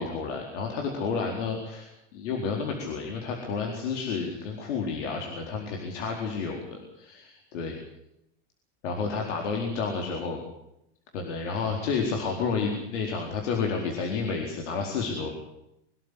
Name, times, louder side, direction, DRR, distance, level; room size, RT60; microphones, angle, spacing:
voice 1, 0.0-7.8 8.8-10.4 11.1-15.3, left 5 dB, 80° left, 1 dB, 4.5 m, -30 dB
24.0 x 13.0 x 10.0 m, 0.84 s
supercardioid pair, 115°, 36 cm